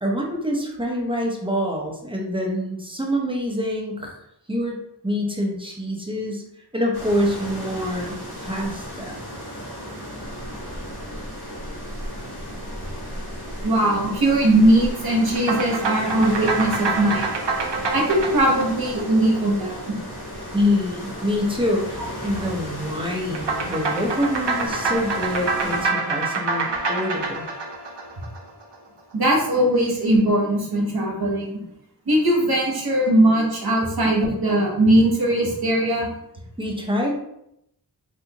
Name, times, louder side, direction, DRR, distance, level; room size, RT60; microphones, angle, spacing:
voice 1, 0.0-4.2 4.5-6.4 6.7-9.1 20.5-27.5 36.6-37.2, left 1 dB, 10° right, -1 dB, 0.7 m, -26 dB
sound 1, 6.9-25.9, equal, 65° left, 1.2 m, -35 dB
voice 2, 13.6-17.3 17.9-20.0 29.1-31.5 32.1-36.1, right 1 dB, 60° right, -2 dB, 1.0 m, -20 dB
sound 2, 15.4-20.0 23.4-28.8, right 4 dB, 85° right, 0.6 m, -27 dB
3.3 x 2.7 x 2.9 m, 0.79 s
wide cardioid pair, 45°, 41 cm